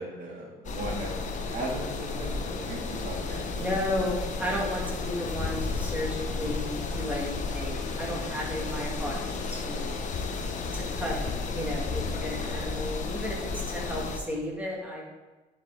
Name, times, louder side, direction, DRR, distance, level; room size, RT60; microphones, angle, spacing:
voice 1, 0.0-3.6, right 2 dB, 55° right, -4 dB, 2.9 m, -37 dB
sound 1, 0.6-14.2, left 4 dB, 45° left, 1.0 m, -33 dB
voice 2, 3.6-10.0 10.7-11.2 11.5-15.0, left 1 dB, 10° right, -3 dB, 2.1 m, -33 dB
9.7 x 5.3 x 4.0 m, 1.2 s
cardioid pair, 110°, 17 cm